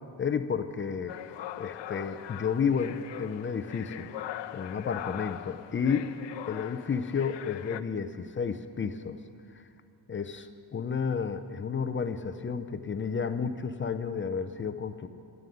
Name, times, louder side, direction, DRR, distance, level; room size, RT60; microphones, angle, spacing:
voice 1, 0.2-1.2 1.6-4.1 4.5-6.1 6.5-9.2 10.1-15.1, left 6 dB, 30° left, 10 dB, 0.6 m, -31 dB
sound 1, 1.1-7.8, left 12 dB, 85° left, 0.6 m, -41 dB
13.0 x 11.0 x 9.3 m, 2.5 s
cardioid pair, 145°, 42 cm